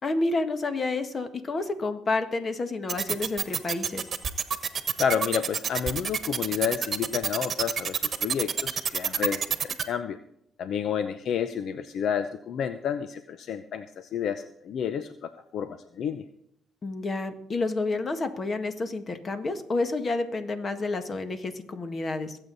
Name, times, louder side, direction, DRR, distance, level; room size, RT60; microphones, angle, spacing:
voice 1, 0.0-4.1 16.8-22.4, left 3 dB, 40° left, 8 dB, 1.7 m, -29 dB
sound 1, 2.9-9.8, right 7 dB, 50° right, 1.2 m, -27 dB
voice 2, 5.0-10.2 10.6-16.2, left 8 dB, 70° left, 11 dB, 0.7 m, -30 dB
22.5 x 8.2 x 4.1 m, 0.73 s
cardioid pair, 90°, 0 cm